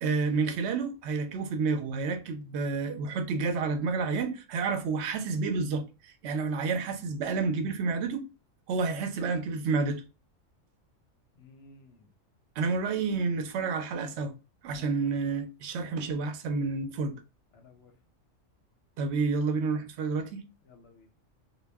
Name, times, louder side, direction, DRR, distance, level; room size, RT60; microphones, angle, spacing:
voice 1, 0.0-8.2 8.7-10.0 12.6-14.3 14.6-17.1 19.0-20.4, right 4 dB, 65° right, 0.8 m, -30 dB
voice 2, 11.4-12.1 14.7-15.4 17.5-18.0 20.6-21.1, left 3 dB, 65° left, 0.7 m, -56 dB
2.2 x 2.1 x 3.3 m
omnidirectional pair, 1.4 m